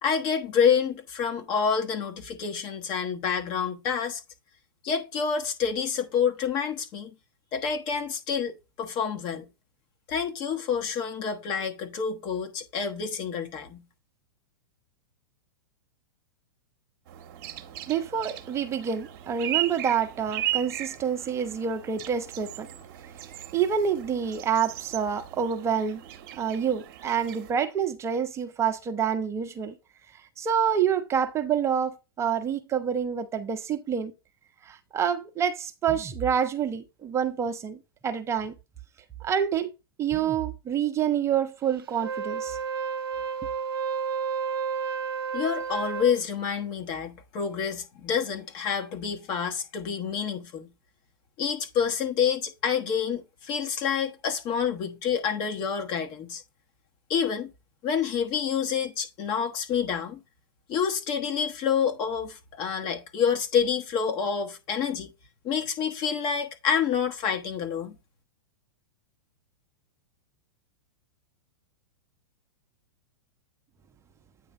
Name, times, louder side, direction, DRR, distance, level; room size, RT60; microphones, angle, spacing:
voice 1, 0.0-4.2 4.8-7.1 7.5-8.5 8.8-9.5 10.1-13.8 45.3-50.7 51.4-56.4 57.1-57.5 57.8-60.2 60.7-65.1 65.4-67.9, left 7 dB, 35° left, 1.2 m, -28 dB
sound 1, 17.1-27.5, right 13 dB, 45° right, 1.0 m, -37 dB
voice 2, 17.9-22.7 23.5-26.0 26.3-29.7 30.4-34.1 34.7-38.5 39.2-39.7 40.0-42.6, right 8 dB, 20° right, 0.8 m, -27 dB
Wind instrument woodwind instrument, 41.9-46.2, right 6 dB, 70° right, 0.6 m, -31 dB
8.9 x 3.2 x 5.1 m
figure-of-eight pair, 100°, 12 cm